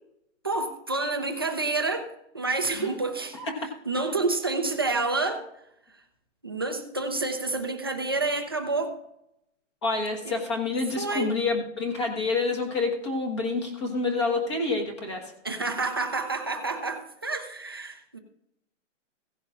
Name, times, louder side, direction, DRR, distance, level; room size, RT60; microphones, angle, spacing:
voice 1, 0.4-2.1 2.3-3.4 3.9-5.4 6.4-8.9 10.2-10.4 11.0-11.3 15.4-18.2, right 3 dB, 20° right, 4 dB, 0.5 m, -28 dB
voice 2, 9.8-15.3, left 3 dB, 25° left, 3 dB, 1.3 m, -28 dB
16.0 x 10.5 x 2.5 m, 0.80 s
hypercardioid pair, 175°, 38 cm